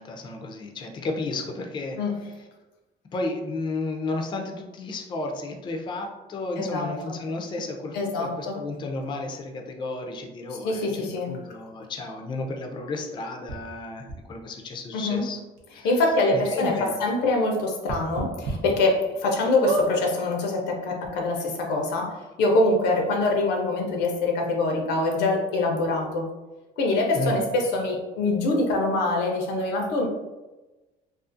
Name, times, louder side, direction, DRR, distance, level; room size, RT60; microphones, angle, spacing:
voice 1, 0.0-2.0 3.1-15.4 15.7-15.9 16.3-16.9 27.1-27.4, left 2 dB, 25° left, 2 dB, 0.3 m, -33 dB
voice 2, 6.6-7.2 7.9-8.6 10.6-11.4 14.9-15.2 15.8-26.3 26.8-30.1, left 2 dB, 90° left, 1 dB, 0.6 m, -24 dB
sound 1, 13.5-13.6 14.1-14.2 15.1-15.2 15.6-15.7 16.1-16.2 17.8-18.5 19.0-19.1 19.6-19.9 20.7-20.8 21.0-21.1, right 1 dB, 80° right, 0.6 m, -28 dB
2.4 x 2.4 x 2.5 m, 1.1 s
cardioid pair, 110°, 17 cm